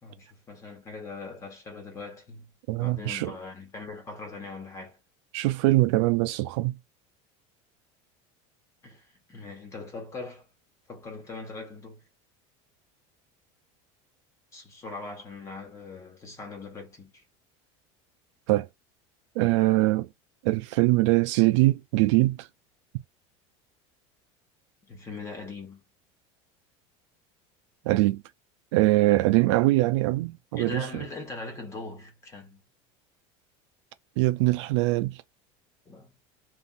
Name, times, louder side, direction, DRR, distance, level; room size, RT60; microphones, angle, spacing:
voice 1, 0.0-5.0 8.8-10.5 10.9-12.0 14.5-17.2 24.8-25.8 30.6-32.6 35.8-36.1, left 3 dB, 20° left, 1.5 m, -41 dB
voice 2, 2.7-3.3 5.3-6.7 18.5-18.7 19.4-20.1 20.4-22.5 27.8-28.2 28.7-31.0 34.2-35.2, right 18 dB, 80° right, 0.6 m, -23 dB
3.5 x 2.6 x 2.6 m
cardioid pair, 160°, 15 cm